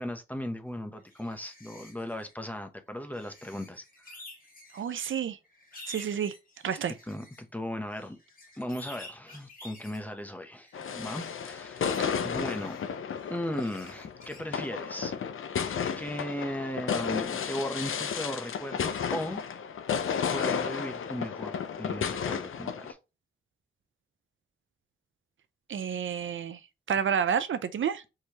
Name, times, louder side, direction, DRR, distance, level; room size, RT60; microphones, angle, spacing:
voice 1, 0.0-4.1 6.7-6.8 7.1-8.2 8.5-12.8 13.3-15.1 16.0-19.4 20.3-23.0, left 1 dB, 10° left, 0.8 m, -37 dB
sound 1, 1.0-2.3 3.0-5.0 5.4-7.4 7.9-10.0 10.5-11.4 11.9-12.0 12.3-14.6, left 2 dB, 40° left, 1.7 m, -51 dB
voice 2, 4.7-5.4 5.9-6.3 6.6-6.9 12.0-12.1 25.7-26.6 26.9-28.0, right 8 dB, 70° right, 0.5 m, -30 dB
sound 2, 10.7-22.9, left 7 dB, 80° left, 0.6 m, -33 dB
4.6 x 3.3 x 2.9 m
cardioid pair, 70°, 21 cm